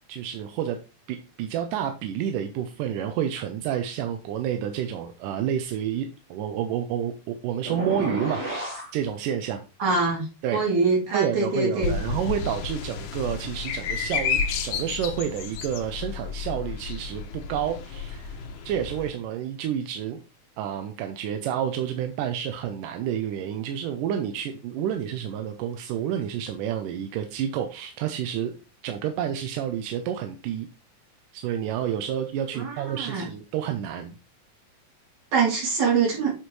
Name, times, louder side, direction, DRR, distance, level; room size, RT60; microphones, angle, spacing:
voice 1, 0.1-0.8 1.1-8.4 8.9-9.6 10.4-10.6 11.1-18.4 18.7-20.2 20.6-28.6 28.8-30.7 31.3-34.2, right 9 dB, 90° right, 6 dB, 2.3 m, -29 dB
sound 1, 7.7-8.9, right 1 dB, 30° right, 3.9 m, -31 dB
voice 2, 9.8-10.3 10.5-11.9 32.5-33.3 35.3-36.3, right 4 dB, 65° right, -4 dB, 4.2 m, -24 dB
sound 2, 11.8-19.1, left 6 dB, 80° left, 2.5 m, -31 dB
7.8 x 6.7 x 3.1 m, 0.31 s
omnidirectional pair, 3.6 m